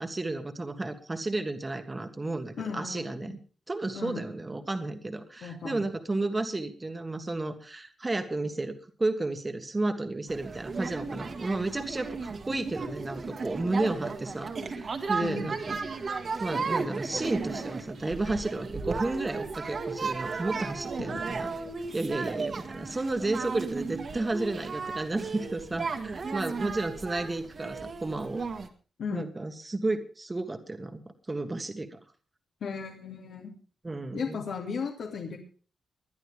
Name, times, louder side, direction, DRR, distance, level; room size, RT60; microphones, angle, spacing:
voice 1, 0.0-3.4 3.7-16.1 16.4-21.5 21.9-28.4 29.1-31.0 31.3-32.0 33.8-34.4, right 2 dB, 15° right, 8 dB, 1.6 m, -32 dB
voice 2, 2.6-3.3 3.9-4.3 5.4-5.8 15.2-15.5 21.0-21.2 29.0-29.3 32.6-33.5 34.1-35.4, left 5 dB, 75° left, 0 dB, 2.6 m, -36 dB
sound 1, 10.3-28.7, right 4 dB, 40° right, 1.7 m, -35 dB
21.0 x 11.5 x 3.5 m, 0.38 s
wide cardioid pair, 165°, 0 cm